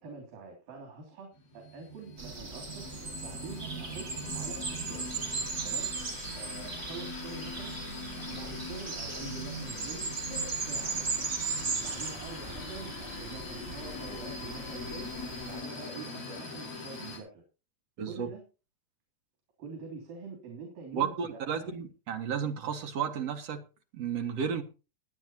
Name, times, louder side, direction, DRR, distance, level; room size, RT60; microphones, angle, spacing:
voice 1, 0.0-5.1 5.6-5.9 6.4-7.8 8.2-11.3 11.8-15.1 15.5-17.4 18.0-18.4 19.6-21.8, right 4 dB, 85° right, 2 dB, 5.0 m, -45 dB
sound 1, 1.4-17.2, left 2 dB, 75° left, 6.2 m, -41 dB
sound 2, 2.2-15.6, right 4 dB, 30° right, 2.4 m, -38 dB
voice 2, 18.0-18.3 20.9-23.6 23.9-24.6, right 7 dB, 55° right, 5 dB, 2.5 m, -33 dB
21.5 x 9.2 x 2.9 m, 0.32 s
omnidirectional pair, 3.9 m